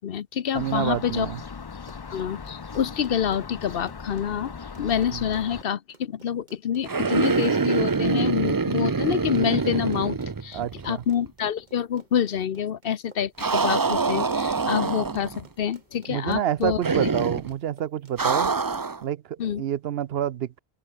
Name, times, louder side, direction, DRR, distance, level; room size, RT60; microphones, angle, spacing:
voice 1, 0.0-1.3 2.1-4.5 4.8-10.2 10.4-17.1 19.4-19.6, left 8 dB, 60° left, 0.9 m, -27 dB
sound 1, 0.5-5.6, left 5 dB, 35° left, 0.4 m, -39 dB
voice 2, 0.5-1.4 5.1-5.2 10.5-11.0 16.1-18.5 19.0-19.2 19.6-20.6, right 10 dB, 70° right, 0.8 m, -28 dB
Run, 1.7-18.2, right 3 dB, 45° right, 2.0 m, -53 dB
sound 2, 6.8-11.0 11.3-11.4 13.4-15.4 16.8-17.5 18.2-19.0, right 4 dB, 25° right, 0.5 m, -25 dB
open air
omnidirectional pair, 1.1 m